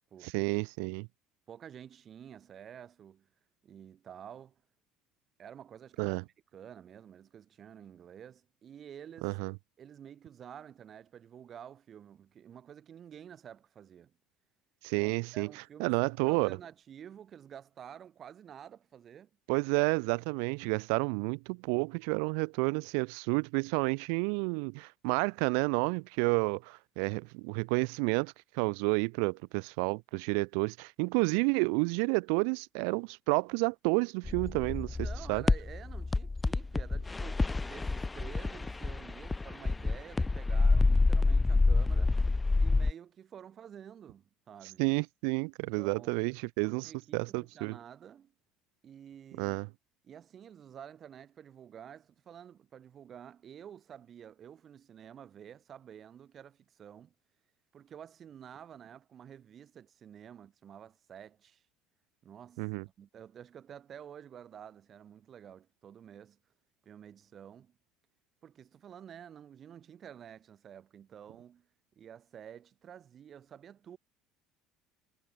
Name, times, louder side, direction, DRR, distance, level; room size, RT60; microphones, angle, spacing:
voice 1, 0.2-1.1 6.0-6.2 9.2-9.5 14.8-15.5 15.8-16.6 19.5-35.0 35.3-35.4 44.8-47.8 49.4-49.7 62.6-62.8, right 40 dB or more, 90° right, 2.3 m, -30 dB
voice 2, 1.5-3.3 3.6-4.6 5.4-6.2 6.5-9.4 9.8-14.1 15.0-19.3 35.0-42.1 42.6-44.8 45.8-46.3 46.6-48.3 48.8-49.6 50.0-57.1 57.7-61.6 62.2-62.7 63.0-66.4 66.8-67.8 68.4-71.7 72.0-74.0, right 9 dB, 35° right, 7.1 m, -50 dB
sound 1, 34.2-42.9, left 3 dB, 10° left, 0.3 m, -28 dB
cardioid pair, 150°, 0 cm